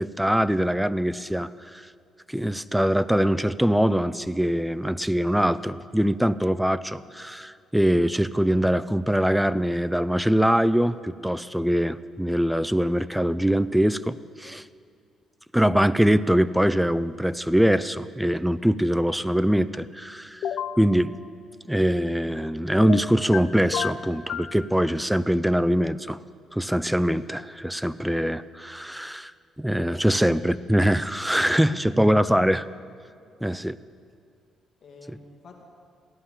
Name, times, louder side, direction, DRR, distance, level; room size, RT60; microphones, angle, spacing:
voice 1, 0.0-1.9 2.3-14.6 15.5-20.4 20.8-21.2 21.7-26.2 26.5-29.3 29.6-32.6 33.4-33.8, equal, 5° right, 15 dB, 0.5 m, -23 dB
sound 1, 20.4-20.8 22.8-23.4 23.7-24.5, left 9 dB, 70° left, 0.7 m, -29 dB
voice 2, 30.1-30.6 31.6-32.5 34.8-35.6, left 4 dB, 55° left, 2 dB, 2.5 m, -46 dB
15.5 x 11.5 x 7.4 m, 2.4 s
cardioid pair, 90°, 0 cm